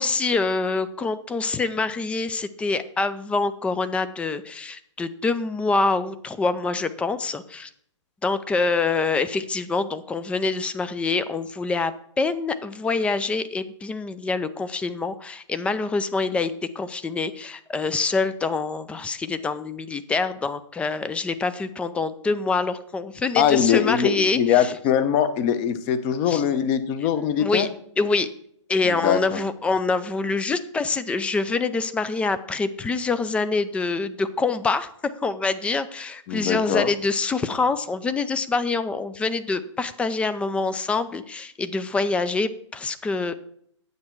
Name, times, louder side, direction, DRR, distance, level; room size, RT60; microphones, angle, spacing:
voice 1, 0.0-7.7 8.2-24.7 26.3-26.4 27.4-27.7 28.0-28.3 28.7-43.3, left 3 dB, 5° left, 12 dB, 0.4 m, -25 dB
voice 2, 23.4-27.7 28.8-29.4 36.3-36.9, left 9 dB, 30° left, 11 dB, 0.9 m, -22 dB
9.5 x 7.7 x 4.5 m, 0.65 s
hypercardioid pair, 130°, 16 cm